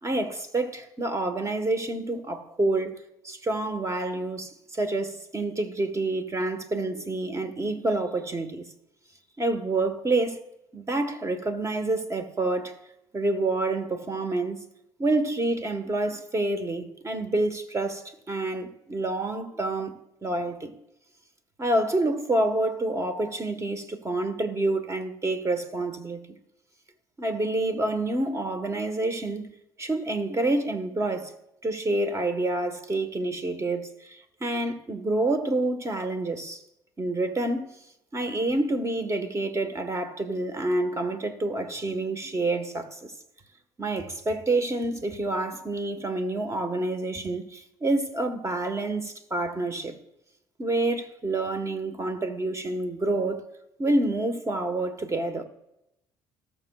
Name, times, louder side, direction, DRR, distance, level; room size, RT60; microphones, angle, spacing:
voice 1, 0.0-8.6 9.4-10.4 10.7-12.8 13.1-14.6 15.0-20.7 21.6-26.4 27.2-31.4 31.6-36.6 37.0-37.7 38.1-43.1 43.8-49.9 50.6-53.5 53.8-55.4, right 2 dB, 25° right, 1.4 m, -28 dB
19.0 x 6.7 x 2.4 m
hypercardioid pair, 60°, 12 cm